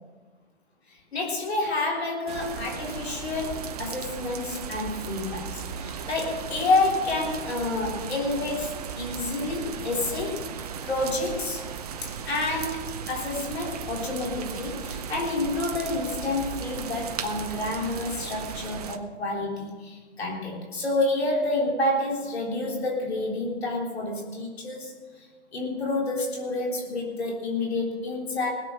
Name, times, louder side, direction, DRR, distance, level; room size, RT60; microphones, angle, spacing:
voice 1, 1.1-10.4 10.8-11.6 12.0-24.9 25.5-28.5, left 2 dB, 65° left, -2 dB, 3.6 m, -29 dB
sound 1, 2.3-19.0, right 7 dB, 35° right, 0.8 m, -36 dB
20.0 x 7.6 x 6.2 m, 1.4 s
figure-of-eight pair, 140°, 34 cm